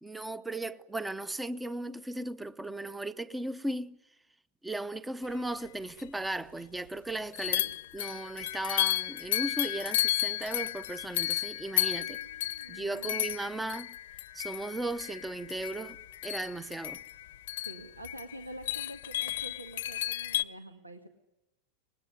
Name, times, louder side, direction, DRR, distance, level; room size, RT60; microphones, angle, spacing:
voice 1, 0.0-4.0 4.6-7.6 7.9-12.2 12.7-13.9 14.3-16.0 16.2-17.0, right 2 dB, 5° right, 0.9 m, -36 dB
sound 1, 5.7-5.8 6.0-6.1 7.3-20.4, left 14 dB, 55° left, 0.9 m, -33 dB
voice 2, 7.4-7.8 11.9-13.3 17.5-21.1, right 1 dB, 80° right, 1.8 m, -47 dB
24.5 x 20.5 x 9.7 m
figure-of-eight pair, 90°, 0 cm